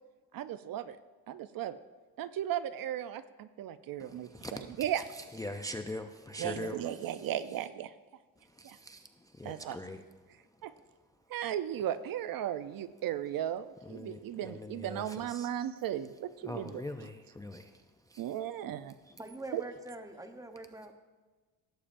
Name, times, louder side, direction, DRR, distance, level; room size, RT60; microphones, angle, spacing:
voice 1, 0.3-1.0 1.3-1.8 2.2-5.0 6.4-7.9 8.6-8.8 9.4-9.8 10.6-10.7 11.3-16.8 18.2-18.9 19.5-19.6, right 11 dB, 60° right, 13 dB, 0.5 m, -36 dB
voice 2, 4.0-4.9 5.1-7.3 8.4-10.9 13.8-15.6 16.4-18.4 18.7-18.8 19.1-19.2, left 1 dB, 10° left, 6 dB, 0.4 m, -43 dB
voice 3, 19.1-20.9, right 2 dB, 10° right, 6 dB, 0.8 m, -44 dB
17.0 x 8.5 x 2.5 m, 1.3 s
cardioid pair, 110°, 38 cm